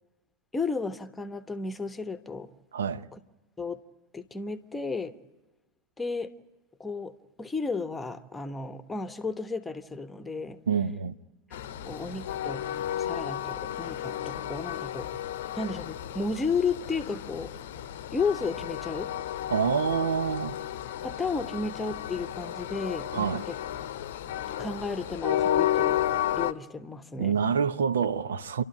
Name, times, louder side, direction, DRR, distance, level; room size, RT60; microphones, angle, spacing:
voice 1, 0.5-2.5 3.1-3.2 3.6-3.8 4.1-5.1 6.0-6.3 6.8-7.1 7.4-10.6 11.8-12.7 13.0-15.1 15.5-17.5 18.1-19.1 21.0-23.5 24.6-26.0 26.4-27.3, left 4 dB, 10° left, 1.1 m, -33 dB
voice 2, 2.7-3.1 10.7-11.1 19.5-20.6 23.1-23.4 27.2-28.6, right 7 dB, 65° right, 0.8 m, -27 dB
Train, 11.5-26.5, left 11 dB, 55° left, 0.8 m, -32 dB
29.0 x 12.5 x 8.8 m
figure-of-eight pair, 90°, 0 cm